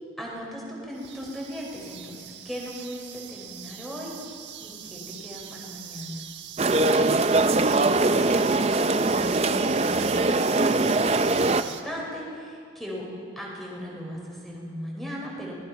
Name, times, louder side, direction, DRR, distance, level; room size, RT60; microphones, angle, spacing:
voice 1, 0.2-4.2 4.6-6.2 6.6-6.8 7.5-13.1 13.3-15.5, equal, ahead, -3 dB, 5.1 m, -38 dB
sound 1, 0.9-11.8, right 9 dB, 85° right, 1.4 m, -42 dB
sound 2, 6.6-11.6, right 2 dB, 35° right, 0.7 m, -22 dB
24.5 x 19.5 x 5.9 m, 2.3 s
head